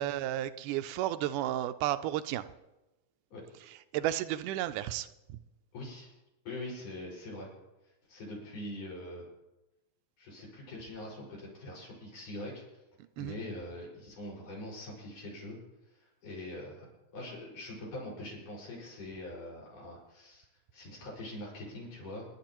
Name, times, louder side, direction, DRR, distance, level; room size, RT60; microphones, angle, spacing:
voice 1, 0.0-2.5 3.7-5.4 13.2-13.4, right 13 dB, 85° right, 11 dB, 2.1 m, -33 dB
voice 2, 5.7-6.1 6.5-7.5 8.1-9.3 10.2-12.6 13.2-15.6 15.9-20.5 20.7-22.3, left 1 dB, 80° left, -4 dB, 7.0 m, -43 dB
28.5 x 11.0 x 3.0 m, 0.99 s
omnidirectional pair, 3.7 m